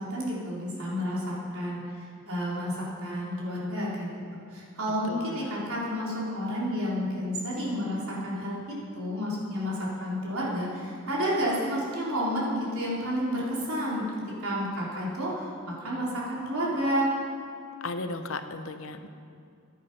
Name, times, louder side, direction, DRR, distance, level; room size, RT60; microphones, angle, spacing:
voice 1, 0.0-4.1 4.5-8.6 8.9-14.0 14.4-17.1, equal, 85° right, -6 dB, 3.8 m, -30 dB
voice 2, 5.1-5.6 17.8-19.1, left 3 dB, 70° left, 8 dB, 0.8 m, -36 dB
15.0 x 10.0 x 5.3 m, 2.4 s
head